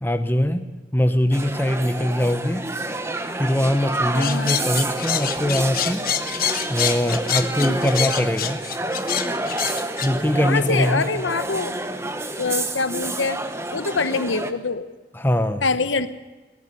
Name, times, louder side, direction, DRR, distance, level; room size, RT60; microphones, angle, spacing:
voice 1, 0.0-0.7 0.9-2.7 3.4-8.6 10.0-11.1 15.1-15.6, left 1 dB, 10° left, 8 dB, 0.9 m, -22 dB
sound 1, 1.3-14.5, right 2 dB, 15° right, 1.0 m, -28 dB
voice 2, 4.1-4.6 10.4-11.8 12.4-13.4 13.7-14.9 15.6-16.1, left 4 dB, 85° left, 11 dB, 1.1 m, -24 dB
sound 2, 4.2-10.1, left 10 dB, 50° left, 1.1 m, -26 dB
21.5 x 18.0 x 6.9 m, 1.2 s
head